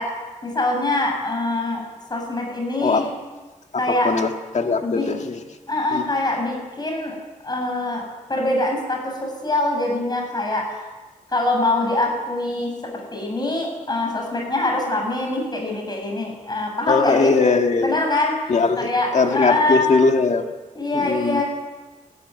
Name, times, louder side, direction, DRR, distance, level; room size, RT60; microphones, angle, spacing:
voice 1, 0.0-1.8 2.1-3.1 3.8-4.1 4.8-5.1 5.7-7.2 7.4-8.0 8.3-10.8 11.3-17.3 17.8-19.9 20.7-21.4, left 2 dB, 30° left, 1 dB, 7.6 m, -24 dB
voice 2, 4.0-5.4 5.9-6.0 16.9-17.9 18.5-20.5 20.9-21.4, left 4 dB, 55° left, 4 dB, 2.0 m, -20 dB
19.5 x 14.5 x 9.5 m, 1.2 s
wide cardioid pair, 110°, 14 cm